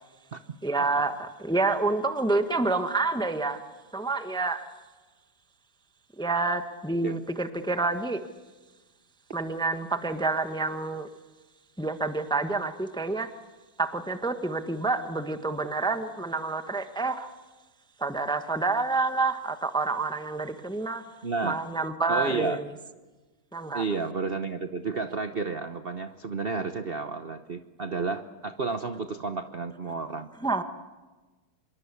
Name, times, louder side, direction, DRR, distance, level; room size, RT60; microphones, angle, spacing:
voice 1, 0.6-3.6 3.9-4.7 6.2-8.2 9.3-11.1 11.8-13.3 13.8-17.3 18.0-21.1 21.4-22.7 23.5-23.8 30.4-30.6, right 3 dB, 5° left, 8 dB, 0.8 m, -28 dB
voice 2, 21.2-21.6 22.1-22.6 23.7-30.3, right 4 dB, 55° right, 9 dB, 0.6 m, -31 dB
26.0 x 23.0 x 8.5 m, 1.2 s
omnidirectional pair, 2.4 m